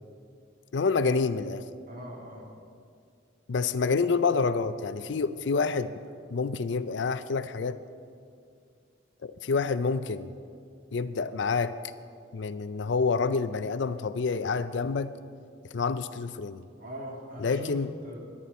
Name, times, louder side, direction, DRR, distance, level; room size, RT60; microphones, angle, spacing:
voice 1, 0.7-1.6 3.5-5.9 6.3-7.8 9.2-10.3 10.9-11.8 12.3-15.1 15.7-16.6 17.4-17.9, left 4 dB, 65° left, 13 dB, 0.5 m, -28 dB
voice 2, 1.9-2.4 16.8-17.7 18.0-18.2, equal, 45° right, -1 dB, 2.4 m, -41 dB
18.5 x 11.0 x 4.2 m, 2.3 s
head